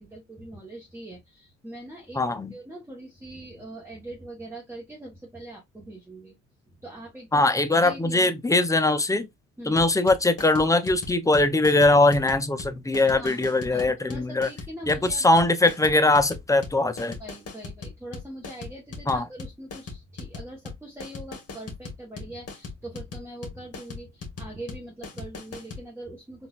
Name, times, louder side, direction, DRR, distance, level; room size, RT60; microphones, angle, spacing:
voice 1, 0.0-6.3 6.7-7.5 7.8-8.3 9.6-9.8 13.0-15.3 17.2-26.5, right 1 dB, 10° right, 1.0 m, -42 dB
voice 2, 2.2-2.5 7.3-9.3 9.7-14.5 14.9-17.2 19.1-19.2, left 2 dB, 10° left, 0.5 m, -21 dB
sound 1, 9.8-25.8, left 4 dB, 55° left, 1.4 m, -39 dB
3.9 x 2.4 x 2.3 m
cardioid pair, 90°, 30 cm